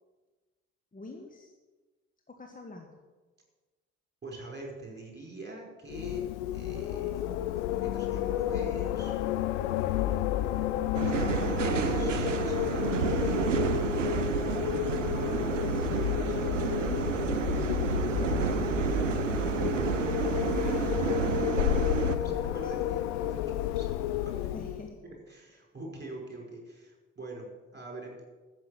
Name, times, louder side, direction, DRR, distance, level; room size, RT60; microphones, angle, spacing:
voice 1, 0.9-1.5 2.3-3.0 14.9-16.0 18.4-19.9 22.1-23.0 24.5-25.0 25.5-25.6, left 2 dB, 20° left, 3 dB, 1.7 m, -46 dB
voice 2, 4.2-7.3 7.7-9.2 10.9-13.6 15.7-16.3 16.6-17.7 20.6-23.9 24.2-24.3 25.3-28.3, right 2 dB, 30° right, 0 dB, 5.1 m, -44 dB
Wind, 5.9-24.9, left 13 dB, 75° left, 0.6 m, -31 dB
sound 1, 10.9-22.2, right 7 dB, 90° right, 0.5 m, -30 dB
13.0 x 6.6 x 8.5 m, 1.3 s
figure-of-eight pair, 40°, 36 cm